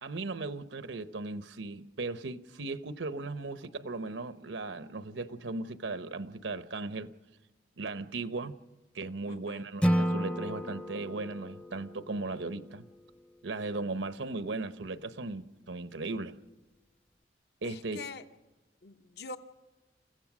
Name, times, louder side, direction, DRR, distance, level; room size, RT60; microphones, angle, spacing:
voice 1, 0.0-7.1 7.8-8.6 8.9-12.9 13.4-16.4 17.6-18.0, right 3 dB, 90° right, 0.9 m, -37 dB
voice 2, 9.3-9.7 17.6-18.2 18.8-19.4, left 3 dB, 60° left, 0.8 m, -44 dB
Acoustic guitar / Strum, 9.8-13.0, equal, 5° left, 0.6 m, -32 dB
29.0 x 15.5 x 6.2 m
head